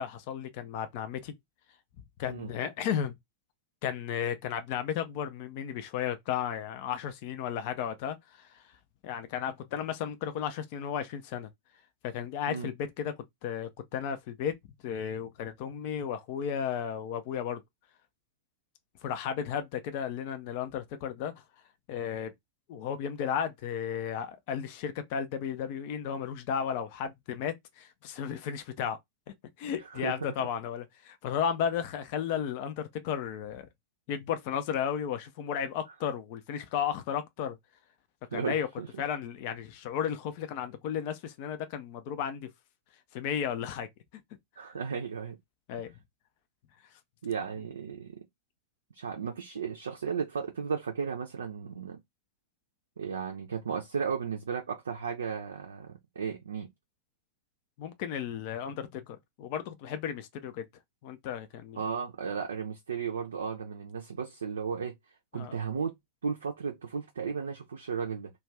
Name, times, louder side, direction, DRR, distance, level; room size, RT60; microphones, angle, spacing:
voice 1, 0.0-1.3 2.2-3.1 3.8-8.6 9.0-11.5 12.0-13.1 13.4-14.5 14.8-17.6 19.0-21.3 21.9-22.3 22.7-29.0 29.6-33.7 34.1-37.6 38.3-38.7 39.0-42.5 43.1-43.9 45.7-45.9 57.8-60.7 61.0-61.8 65.3-65.5, left 8 dB, 45° left, 0.4 m, -34 dB
voice 2, 29.9-30.5 38.3-39.0 44.6-45.4 47.2-48.2 48.9-52.0 53.0-56.7 61.8-65.0 65.3-65.9 66.2-68.3, right 6 dB, 70° right, 0.5 m, -35 dB
2.4 x 2.3 x 3.2 m
figure-of-eight pair, 90°, 0 cm